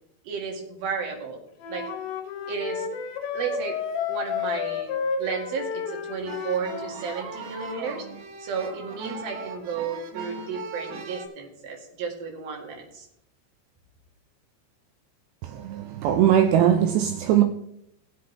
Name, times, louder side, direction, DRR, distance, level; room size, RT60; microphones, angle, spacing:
voice 1, 0.2-1.4 1.7-1.8 2.5-2.9 3.3-3.8 4.1-4.9 5.2-8.0 8.4-13.1, right 5 dB, 55° right, 3.5 m, -33 dB
Wind instrument woodwind instrument, 1.6-7.0, left 6 dB, 85° left, 3.9 m, -31 dB
sound 1, 6.3-11.3, right 4 dB, 70° right, 3.4 m, -38 dB
voice 2, 16.0-17.4, right 10 dB, 90° right, 2.4 m, -19 dB
18.0 x 7.9 x 3.3 m
omnidirectional pair, 5.6 m